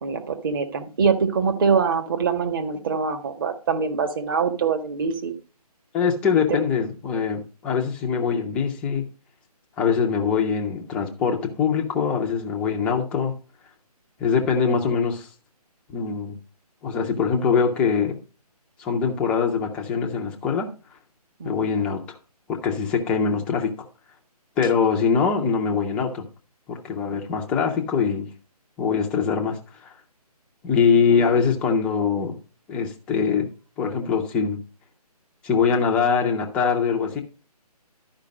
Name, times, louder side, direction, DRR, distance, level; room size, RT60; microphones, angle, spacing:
voice 1, 0.0-5.3 6.5-6.6 21.4-21.5 30.8-31.3, right 5 dB, 35° right, 6 dB, 1.5 m, -24 dB
voice 2, 5.9-9.1 9.8-13.3 14.2-15.3 15.9-16.3 16.8-18.2 18.8-20.7 21.4-22.2 22.5-23.9 24.6-26.3 26.7-28.3 28.8-29.9 30.6-32.4 32.7-33.5 33.8-34.6 35.4-37.2, left 6 dB, 5° left, 1 dB, 0.5 m, -23 dB
12.0 x 5.1 x 5.1 m, 0.35 s
figure-of-eight pair, 155°, 20 cm